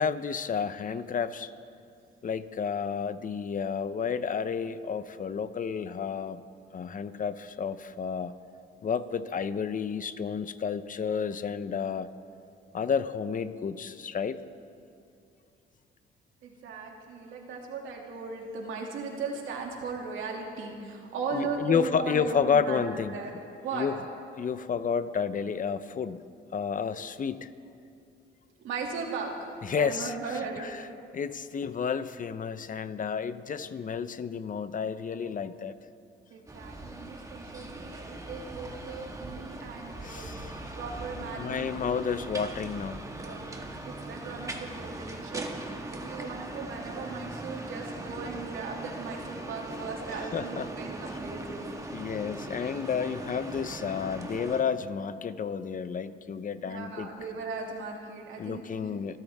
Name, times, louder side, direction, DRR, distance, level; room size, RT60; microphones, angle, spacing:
voice 1, 0.0-1.5 2.2-6.4 6.7-8.3 8.8-12.1 12.7-14.4 21.3-23.2 23.7-24.0 24.4-26.2 26.5-27.5 29.6-30.1 31.1-35.8 37.6-37.7 40.0-40.5 41.4-43.0 50.1-50.7 51.9-57.1 58.4-59.2, left 6 dB, 40° left, 12 dB, 0.8 m, -31 dB
voice 2, 16.4-22.8 23.1-23.3 23.6-23.9 28.6-29.5 29.8-30.9 36.3-40.3 40.7-41.9 43.1-51.7 56.6-58.6, right 4 dB, 80° right, 0 dB, 2.6 m, -37 dB
sound 1, 36.5-54.6, right 2 dB, 15° right, 1.8 m, -40 dB
28.5 x 13.5 x 3.6 m, 2.6 s
cardioid pair, 90°, 20 cm